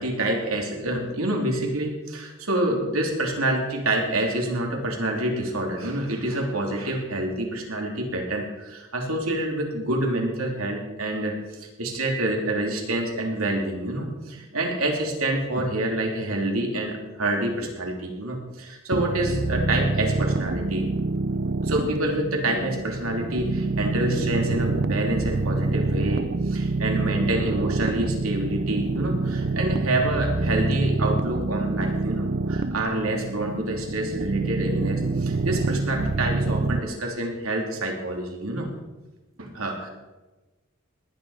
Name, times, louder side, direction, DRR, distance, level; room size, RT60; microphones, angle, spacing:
voice 1, 0.0-20.9 21.6-38.7 39.4-39.9, right 1 dB, 90° right, 1 dB, 3.2 m, -27 dB
sound 1, 18.9-36.8, right 3 dB, 45° right, 0.5 m, -26 dB
19.0 x 10.0 x 5.0 m, 1.2 s
head